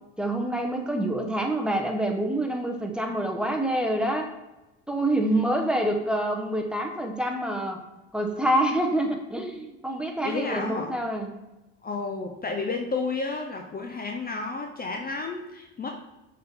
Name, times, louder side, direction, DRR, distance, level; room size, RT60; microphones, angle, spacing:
voice 1, 0.2-4.3 4.9-7.8 8.1-11.3, right 1 dB, 5° right, 3 dB, 1.1 m, -26 dB
voice 2, 10.2-10.9 11.8-15.9, left 3 dB, 25° left, 3 dB, 0.8 m, -31 dB
6.6 x 4.3 x 3.7 m, 1.0 s
supercardioid pair, 80°, 35 cm